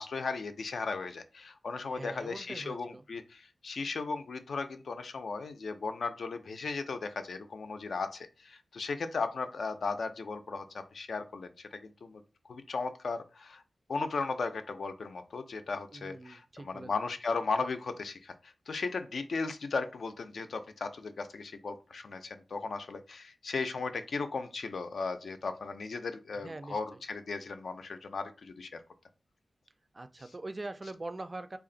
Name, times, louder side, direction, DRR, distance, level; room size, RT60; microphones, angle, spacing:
voice 1, 0.0-13.6 13.9-28.8, left 4 dB, 75° left, 0.4 m, -36 dB
voice 2, 1.9-3.0 15.9-16.9 26.4-26.8 29.9-31.6, right 2 dB, 30° right, 0.3 m, -42 dB
3.3 x 2.4 x 3.8 m
wide cardioid pair, 135°, 0 cm